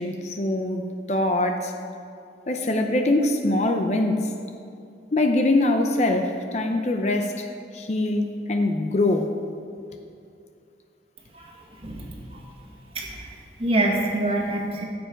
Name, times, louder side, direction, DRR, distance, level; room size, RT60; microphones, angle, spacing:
voice 1, 0.0-1.7 2.5-4.3 5.1-7.5 7.7-9.3, left 2 dB, 40° left, 4 dB, 0.7 m, -23 dB
voice 2, 11.3-12.4 12.9-13.3 13.6-14.8, right 1 dB, 30° right, -1 dB, 1.7 m, -26 dB
15.0 x 7.8 x 5.2 m, 2.5 s
head